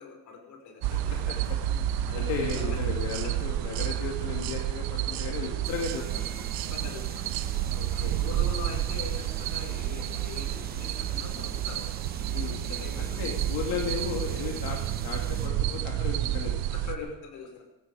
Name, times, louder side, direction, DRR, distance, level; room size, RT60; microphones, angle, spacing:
voice 1, 0.0-1.5 2.0-2.8 6.5-7.3 7.9-11.8 12.3-13.3 16.7-17.6, left 5 dB, 55° left, 3 dB, 5.5 m, -43 dB
sound 1, 0.8-16.5, equal, 10° left, 2.7 m, -49 dB
sound 2, 0.8-17.0, right 12 dB, 80° right, 1.2 m, -30 dB
voice 2, 2.1-6.2 7.7-8.2 12.3-12.6 13.0-16.6, left 6 dB, 80° left, 0 dB, 2.7 m, -35 dB
sound 3, 5.6-15.5, right 6 dB, 25° right, 1.3 m, -44 dB
17.5 x 16.0 x 5.0 m, 1.0 s
cardioid pair, 145°, 35 cm